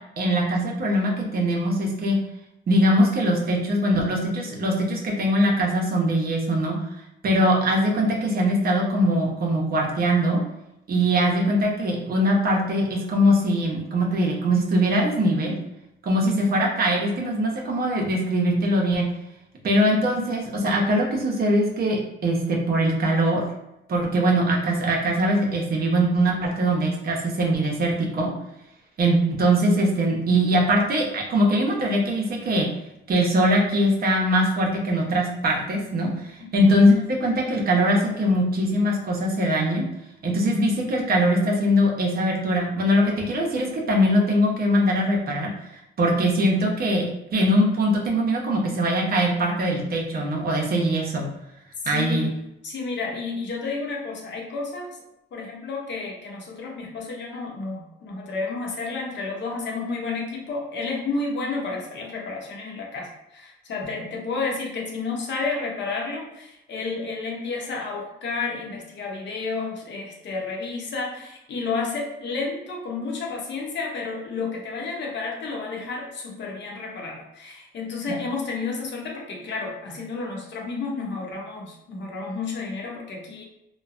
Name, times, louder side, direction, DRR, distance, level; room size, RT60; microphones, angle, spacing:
voice 1, 0.2-2.2 2.7-6.8 7.2-10.4 10.9-15.6 16.0-19.1 19.6-22.0 22.2-23.4 23.9-28.3 29.0-32.7 33.1-39.8 40.2-45.5 46.0-47.1 47.3-51.3 51.9-52.2, equal, 50° right, -1 dB, 0.7 m, -22 dB
voice 2, 51.8-54.9 55.3-83.4, left 4 dB, 65° left, -1 dB, 0.8 m, -31 dB
3.1 x 2.1 x 2.4 m, 0.86 s
cardioid pair, 90°, 20 cm